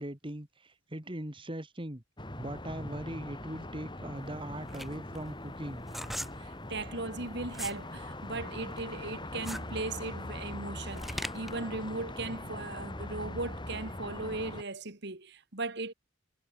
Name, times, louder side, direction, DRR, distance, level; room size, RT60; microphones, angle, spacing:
voice 1, 0.0-2.0 2.4-5.8, right 1 dB, 25° right, 2.3 m, -40 dB
sound 1, 2.2-14.6, left 1 dB, 25° left, 6.1 m, -41 dB
sound 2, 4.2-7.8 8.2-11.6, equal, ahead, 4.6 m, -41 dB
voice 2, 6.4-15.9, right 3 dB, 55° right, 2.7 m, -38 dB
head